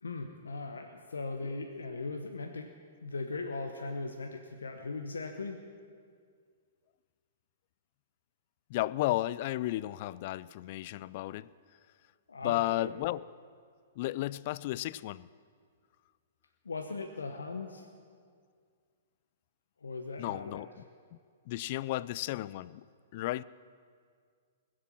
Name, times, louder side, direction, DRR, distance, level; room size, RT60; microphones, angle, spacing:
voice 1, 0.0-2.7 3.0-5.6 12.3-12.9 16.6-17.9 19.8-20.6, left 3 dB, 80° left, 4 dB, 1.0 m, -39 dB
voice 2, 8.7-11.5 12.4-13.3 14.0-15.3 20.2-20.7 21.1-21.2 21.5-22.8 23.1-23.4, left 16 dB, 45° left, 20 dB, 0.3 m, -33 dB
20.5 x 7.8 x 7.3 m, 2.1 s
figure-of-eight pair, 115°, 0 cm